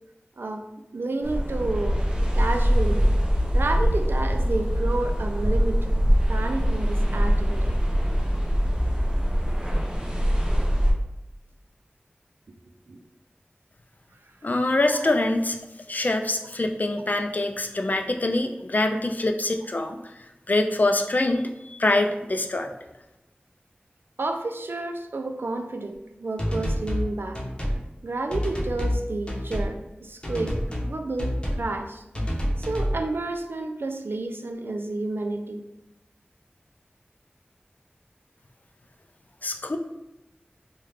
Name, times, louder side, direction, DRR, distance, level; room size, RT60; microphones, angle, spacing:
voice 1, 0.4-0.7 0.9-2.1 2.3-3.1 3.5-6.0 6.3-7.8 12.9-13.0 14.9-15.2 24.2-27.4 28.0-32.0 32.6-35.7, right 2 dB, 75° right, 5 dB, 0.3 m, -30 dB
sound 1, 1.2-10.9, equal, 20° right, 0.6 m, -23 dB
voice 2, 14.4-15.6 15.9-20.0 20.5-22.7 39.4-39.8, left 2 dB, 50° left, 5 dB, 0.3 m, -24 dB
sound 2, 26.4-27.1 27.3-27.8 28.3-29.0 29.3-29.7 30.2-30.9 31.2-31.7 32.1-33.0, equal, 25° left, 0.8 m, -27 dB
3.1 x 2.3 x 3.4 m, 0.95 s
wide cardioid pair, 55°, 4 cm